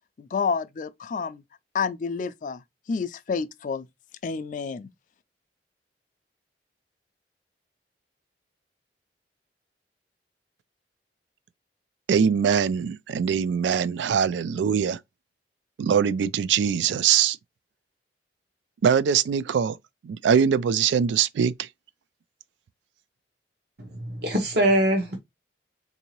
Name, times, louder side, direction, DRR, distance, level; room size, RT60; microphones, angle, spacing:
voice 1, 0.2-1.4 1.7-2.6 2.9-3.9 4.2-4.9, left 5 dB, 45° left, 0.3 m, -29 dB
voice 2, 12.1-15.0 15.8-17.4 18.8-19.8 20.0-21.7, right 7 dB, 85° right, 0.3 m, -22 dB
voice 3, 23.8-25.2, right 1 dB, 60° right, 0.9 m, -23 dB
3.8 x 2.7 x 2.9 m
head